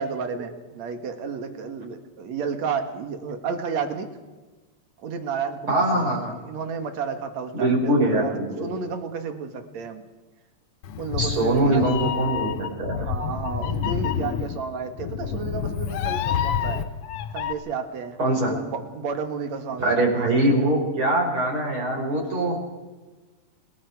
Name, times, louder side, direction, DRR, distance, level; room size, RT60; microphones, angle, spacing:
voice 1, 0.0-4.1 5.0-6.1 6.5-10.0 11.0-12.0 12.9-16.8 17.3-20.7, right 6 dB, 60° right, 6 dB, 2.8 m, -32 dB
voice 2, 5.7-6.3 7.5-8.7 11.2-13.0 18.2-18.5 19.8-22.6, right 1 dB, 40° right, -3 dB, 6.1 m, -22 dB
Meow, 10.8-17.5, left 8 dB, 75° left, 1.3 m, -28 dB
30.0 x 18.5 x 4.8 m, 1.2 s
omnidirectional pair, 3.7 m